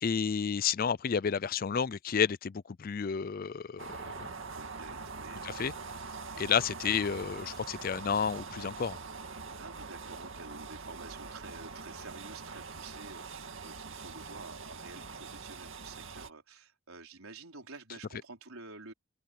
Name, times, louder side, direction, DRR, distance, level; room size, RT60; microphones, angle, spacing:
voice 1, 0.0-4.3 5.4-5.7 6.4-9.0, left 6 dB, 45° left, 0.4 m, -31 dB
sound 1, 3.8-16.3, right 4 dB, 65° right, 2.2 m, -43 dB
voice 2, 4.5-5.9 9.6-18.9, right 3 dB, 85° right, 4.6 m, -50 dB
head